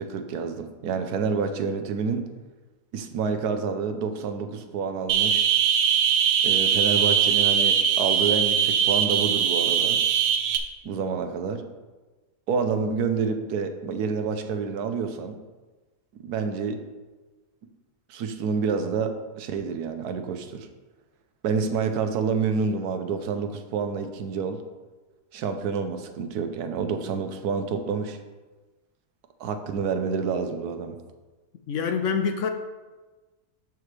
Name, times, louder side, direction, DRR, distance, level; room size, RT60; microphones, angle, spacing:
voice 1, 0.0-2.3 2.9-5.5 6.4-10.0 10.8-11.6 12.5-15.4 16.1-16.8 18.1-20.7 21.4-24.6 25.3-28.2 29.4-31.0, right 5 dB, 90° right, 8 dB, 1.3 m, -28 dB
sound 1, 5.1-10.6, right 8 dB, 70° right, 1.0 m, -21 dB
voice 2, 31.7-32.5, left 6 dB, 65° left, 6 dB, 0.8 m, -25 dB
12.0 x 4.7 x 3.3 m, 1.2 s
omnidirectional pair, 1.6 m